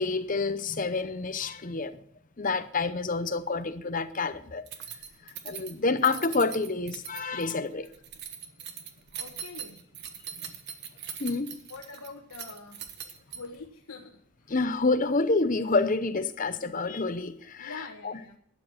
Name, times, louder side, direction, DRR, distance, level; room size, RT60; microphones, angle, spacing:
voice 1, 0.0-2.0 2.4-4.6 5.4-7.9 11.2-11.6 14.5-18.1, left 3 dB, 35° left, 0.7 m, -28 dB
Keys jangling, 4.7-13.7, right 8 dB, 50° right, 1.2 m, -41 dB
voice 2, 5.9-6.2 7.5-7.9 9.2-10.2 11.7-12.9 13.3-14.5 17.6-18.4, left 4 dB, 80° left, 1.3 m, -45 dB
12.0 x 8.8 x 6.3 m
head